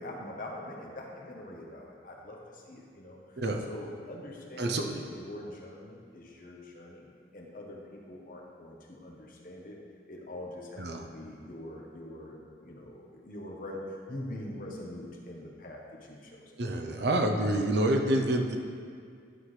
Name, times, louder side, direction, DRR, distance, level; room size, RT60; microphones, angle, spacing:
voice 1, 0.0-3.4 3.7-7.1 7.3-9.8 10.1-16.4, left 1 dB, 50° left, -1 dB, 1.0 m, -43 dB
voice 2, 4.6-5.0 10.8-11.0 16.6-18.6, right 1 dB, 65° right, 4 dB, 0.7 m, -27 dB
11.0 x 5.7 x 3.3 m, 2.2 s
head